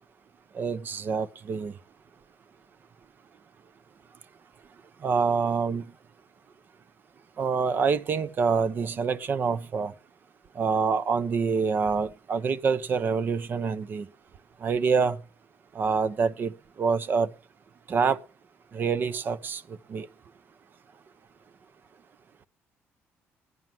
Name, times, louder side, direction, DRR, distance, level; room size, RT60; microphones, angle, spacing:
voice 1, 0.5-1.7 5.0-5.9 7.4-9.9 10.6-14.1 14.6-15.2 15.7-16.5 16.8-17.3 17.9-18.2 18.7-19.6 19.9-20.1, right 5 dB, 45° right, 0.7 m, -26 dB
11.0 x 9.5 x 7.5 m
cardioid pair, 120°, 5 cm